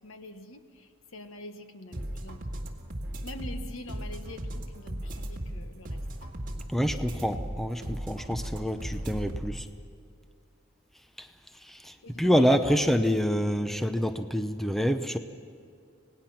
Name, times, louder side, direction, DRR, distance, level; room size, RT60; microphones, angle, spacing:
voice 1, 0.0-2.5 3.2-6.0 12.0-12.9, left 1 dB, 80° left, 8 dB, 1.4 m, -44 dB
sound 1, 1.9-9.7, right 1 dB, 40° right, 2.0 m, -37 dB
voice 2, 6.7-9.7 11.2-11.3 11.6-15.2, equal, ahead, 8 dB, 0.7 m, -27 dB
26.5 x 19.0 x 5.9 m, 2.3 s
head